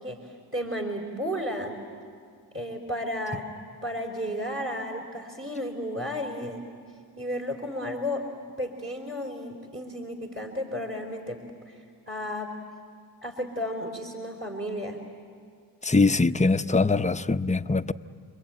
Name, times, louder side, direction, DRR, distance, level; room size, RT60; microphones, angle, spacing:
voice 1, 0.0-1.8 2.5-3.5 3.8-6.6 7.2-8.2 8.6-12.5 13.2-15.0, equal, 30° right, 2 dB, 4.0 m, -33 dB
voice 2, 15.8-17.9, left 3 dB, 15° left, 9 dB, 0.8 m, -22 dB
28.5 x 22.0 x 8.9 m, 2.1 s
supercardioid pair, 40°, 41 cm